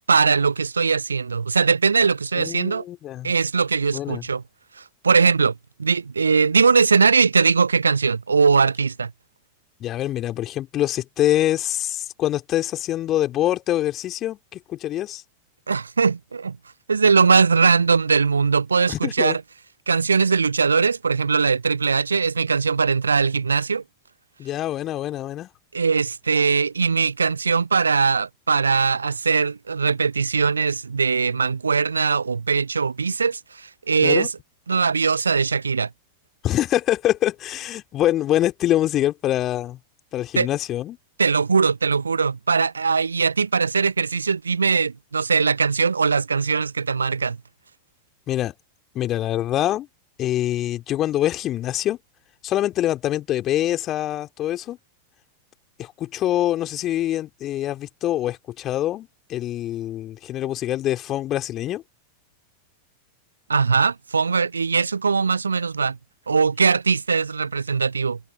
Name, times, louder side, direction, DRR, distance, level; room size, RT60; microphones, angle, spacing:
voice 1, 0.1-2.8 3.2-4.4 4.8-5.5 5.8-9.1 15.7-16.6 16.9-19.4 19.9-23.8 25.7-34.3 34.7-35.9 40.4-40.5 41.2-47.4 63.5-66.0 66.3-68.2, right 5 dB, 75° right, 0.3 m, -20 dB
voice 2, 2.4-3.3 3.9-4.2 9.8-15.2 18.9-19.4 24.4-25.5 34.0-34.3 36.4-39.8 40.1-41.0 48.3-48.5 48.9-49.9 50.2-52.0 52.4-54.8 55.8-61.8, left 13 dB, 30° left, 2.9 m, -25 dB
figure-of-eight pair, 90°, 0 cm